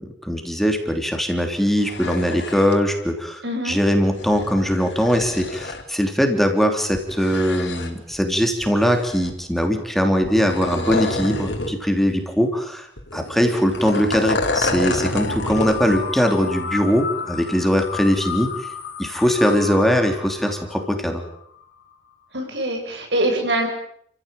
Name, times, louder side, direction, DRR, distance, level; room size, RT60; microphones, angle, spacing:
voice 1, 0.0-12.9 13.1-18.7 19.0-21.3, equal, ahead, 4 dB, 3.2 m, -21 dB
sound 1, 1.7-2.8 4.0-5.8 6.9-8.1 8.6-9.5 10.2-11.8 12.1-12.2 13.0-16.0 16.4-16.5, left 2 dB, 90° left, 4.1 m, -28 dB
voice 2, 3.4-3.8 22.3-23.7, right 1 dB, 80° right, 3 dB, 7.7 m, -23 dB
sound 2, 15.1-21.9, left 6 dB, 65° left, 3.4 m, -33 dB
30.0 x 15.5 x 9.1 m, 0.69 s
head